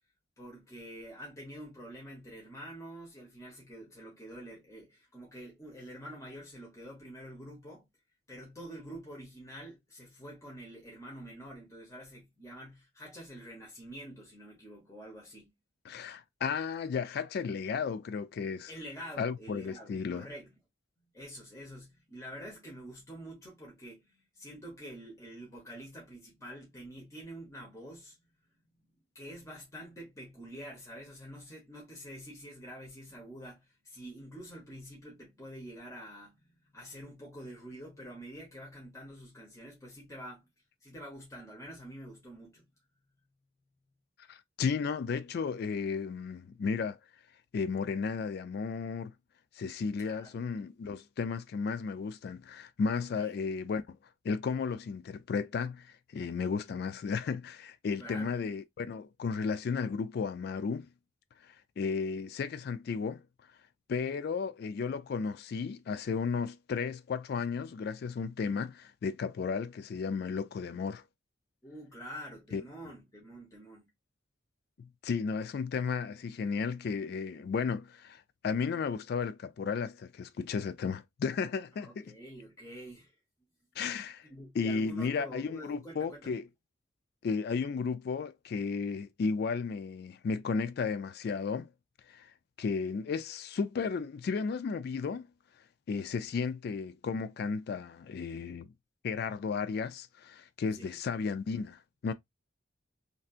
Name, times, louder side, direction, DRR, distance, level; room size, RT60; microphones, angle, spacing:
voice 1, 0.4-7.9 8.3-15.5 18.7-20.6 21.1-28.2 29.1-36.4 36.7-40.4 40.8-42.7 50.0-50.4 53.1-53.3 56.4-56.5 58.0-58.3 63.9-64.2 71.6-73.9 81.8-83.1 84.2-86.4 100.7-101.0, equal, 15° left, 1.1 m, -47 dB
voice 2, 15.9-18.7 19.2-20.3 44.3-47.0 47.5-49.1 49.6-54.0 54.2-60.9 61.4-63.2 63.9-71.0 72.5-72.6 74.8-82.0 83.8-84.3 84.5-86.5 87.2-91.7 92.1-92.3 92.6-95.3 95.9-98.7 99.0-102.1, left 5 dB, 55° left, 0.3 m, -34 dB
3.3 x 2.7 x 2.4 m
head